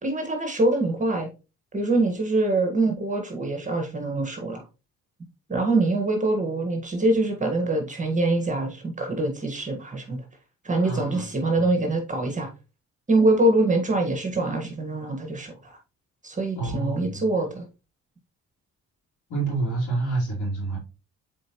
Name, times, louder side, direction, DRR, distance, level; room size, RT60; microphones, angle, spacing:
voice 1, 0.0-1.3 1.7-4.6 5.5-10.2 10.6-12.5 13.1-15.8 16.2-17.6, right 2 dB, 25° right, 4 dB, 1.6 m, -24 dB
voice 2, 10.8-11.3 11.6-11.7 16.5-17.3 19.3-20.8, right 3 dB, 80° left, -7 dB, 3.3 m, -28 dB
7.4 x 4.3 x 3.0 m, 0.31 s
cardioid pair, 90°, 30 cm